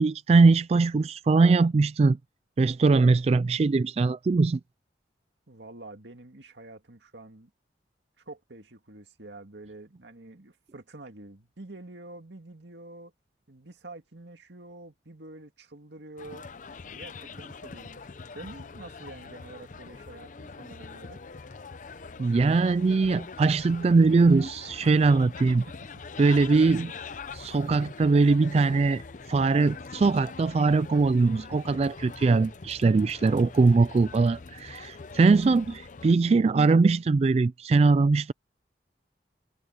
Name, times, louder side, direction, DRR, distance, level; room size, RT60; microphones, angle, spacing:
voice 1, 0.0-2.2 2.6-4.6 22.2-25.7 26.2-26.9 27.3-29.0 29.3-38.3, right 3 dB, 35° right, 0.3 m, -21 dB
voice 2, 5.5-7.5 8.2-13.1 13.5-16.4 16.8-18.0 18.3-21.2 25.6-26.0, right 2 dB, 80° right, 2.2 m, -47 dB
sound 1, 16.2-36.1, left 4 dB, 45° left, 0.6 m, -43 dB
head